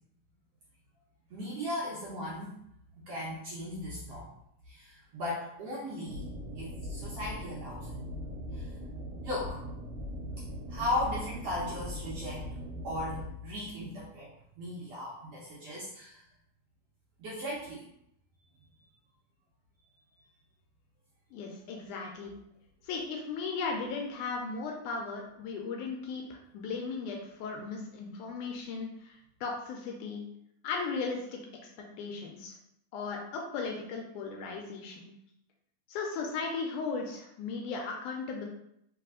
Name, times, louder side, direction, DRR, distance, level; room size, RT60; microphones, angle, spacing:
voice 1, 1.3-2.6 2.9-4.3 4.7-6.3 6.6-8.0 8.5-8.8 9.2-9.6 10.7-12.5 12.8-14.3 14.6-16.2 17.2-17.9, left 1 dB, 70° right, -6 dB, 1.5 m, -37 dB
sound 1, 6.1-13.3, equal, 85° right, 2.2 m, -40 dB
voice 2, 21.3-22.3 22.8-30.2 30.6-31.4 32.0-32.5 32.9-35.1 35.9-38.5, left 4 dB, 80° left, 1 dB, 1.9 m, -36 dB
4.9 x 3.0 x 3.6 m, 0.76 s
omnidirectional pair, 3.8 m